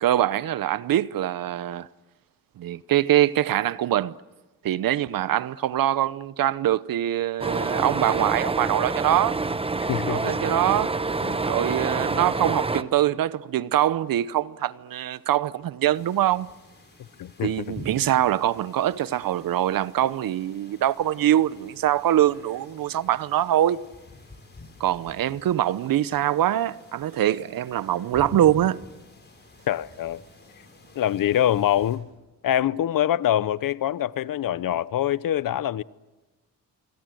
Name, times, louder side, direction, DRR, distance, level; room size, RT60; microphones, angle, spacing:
voice 1, 0.0-1.9 2.6-4.2 4.6-9.4 10.1-10.9 11.5-16.5 17.4-23.8 24.8-28.8, right 12 dB, 75° right, 0.8 m, -23 dB
sound 1, 7.4-12.8, right 3 dB, 15° right, 0.9 m, -27 dB
voice 2, 9.8-10.4 11.2-11.4 17.2-17.8 29.7-30.2 30.9-32.1 32.4-35.8, left 11 dB, 70° left, 0.8 m, -25 dB
sound 2, 15.9-32.0, left 2 dB, 30° left, 7.7 m, -47 dB
26.5 x 24.0 x 7.8 m
cardioid pair, 90°, 35 cm